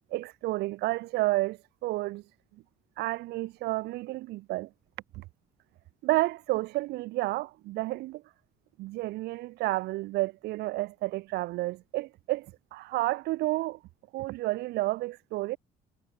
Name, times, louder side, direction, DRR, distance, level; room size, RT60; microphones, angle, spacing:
voice 1, 0.1-2.2 3.0-4.7 5.1-5.2 6.0-8.2 8.8-13.8 14.1-15.6, right 19 dB, 75° right, 0.5 m, -31 dB
cardioid pair, 110°, 17 cm